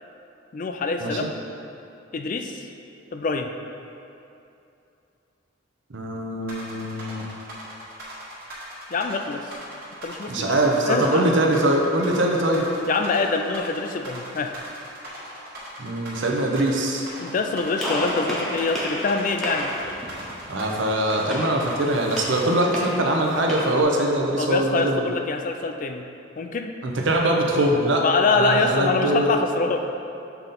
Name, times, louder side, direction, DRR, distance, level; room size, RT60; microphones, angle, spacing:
voice 1, 0.5-1.3 2.1-2.7 3.1-3.5 8.9-9.5 10.0-10.6 10.9-11.3 12.9-14.5 17.2-19.7 24.4-26.0 26.4-26.7 28.0-29.9, left 4 dB, 40° left, 5 dB, 0.3 m, -25 dB
voice 2, 5.9-7.2 10.3-12.6 15.8-17.0 20.5-25.0 26.8-28.0 28.4-29.3, right 1 dB, 60° right, 1 dB, 0.7 m, -22 dB
sound 1, 6.5-22.5, equal, 45° right, 1.5 m, -39 dB
Gunshot gunfire, 17.8-23.8, equal, ahead, 0.9 m, -32 dB
6.9 x 3.8 x 4.2 m, 2.7 s
head